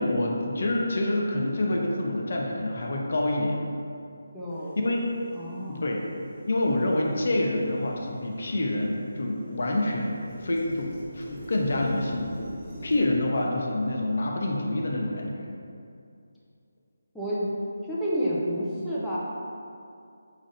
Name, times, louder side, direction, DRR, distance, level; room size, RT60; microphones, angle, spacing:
voice 1, 0.0-3.6 4.8-5.0 5.7-6.0 6.5-12.4 12.8-15.5, left 1 dB, 60° left, -1 dB, 0.6 m, -27 dB
voice 2, 4.3-4.8 5.3-5.9 17.1-17.5 17.9-19.2, equal, ahead, -11 dB, 0.6 m, -30 dB
sound 1, 5.2-5.4 5.7-8.7 9.0-13.0, equal, 15° right, 1.1 m, -44 dB
5.0 x 2.4 x 4.0 m, 2.5 s
figure-of-eight pair, 155°, 0 cm